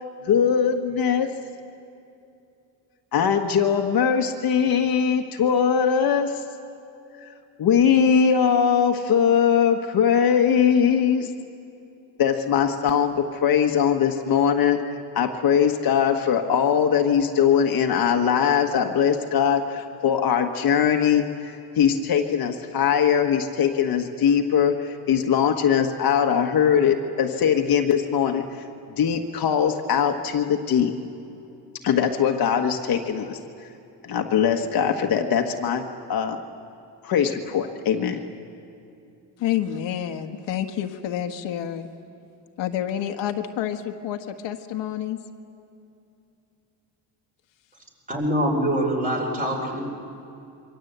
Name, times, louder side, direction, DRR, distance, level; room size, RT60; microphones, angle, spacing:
voice 1, 0.2-1.3 3.1-6.3 7.6-11.3 12.2-28.4 29.0-30.9 31.8-33.4 34.0-35.8 36.1-36.4 37.0-38.2, left 7 dB, 55° left, 4 dB, 1.4 m, -21 dB
voice 2, 39.4-41.9 42.6-45.2, left 10 dB, 80° left, 6 dB, 1.5 m, -28 dB
voice 3, 48.1-49.8, equal, 20° right, 1 dB, 4.3 m, -24 dB
27.5 x 24.0 x 8.1 m, 2.6 s
cardioid pair, 170°, 43 cm